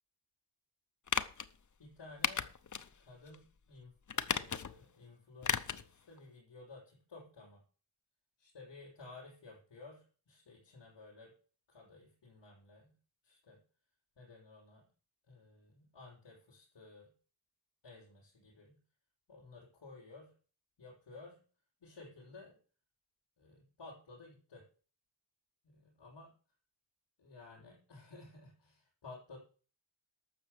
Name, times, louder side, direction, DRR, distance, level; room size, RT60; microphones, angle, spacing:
sound 1, 1.1-1.5 2.2-2.9 3.3-3.4 4.1-4.8 5.4-5.9 6.2-6.3, left 7 dB, 45° left, 0.8 m, -35 dB
voice 1, 1.8-2.5 3.0-7.6 8.4-11.3 11.7-12.9 13.2-13.6 14.2-14.9 15.3-17.1 17.8-18.8 19.3-20.3 20.8-21.4 21.8-22.6 23.4-24.6 25.6-26.3 27.2-29.4, left 3 dB, 80° left, -4 dB, 6.5 m, -55 dB
12.5 x 7.1 x 6.8 m, 0.39 s
wide cardioid pair, 135°, 42 cm